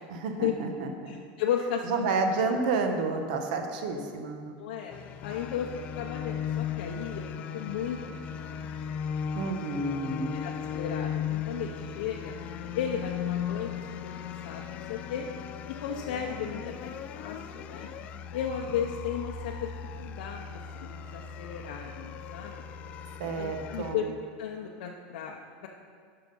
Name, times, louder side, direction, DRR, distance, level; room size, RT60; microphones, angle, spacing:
voice 1, 0.1-1.1 1.8-4.6 9.3-10.4 23.2-24.1, right 3 dB, 60° right, 5 dB, 1.1 m, -30 dB
voice 2, 1.1-1.9 4.6-4.9 5.2-5.7 5.9-7.3 7.5-8.6 9.4-9.5 10.4-12.3 12.7-13.7 14.2-15.3 15.7-16.9 17.2-17.9 18.3-19.7 20.0-22.5 23.4-24.0 24.4-25.7, left 8 dB, 70° left, 0 dB, 0.7 m, -34 dB
sound 1, 4.9-23.9, left 8 dB, 25° left, 0.3 m, -37 dB
11.0 x 5.9 x 5.3 m, 2.1 s
supercardioid pair, 175°, 5 cm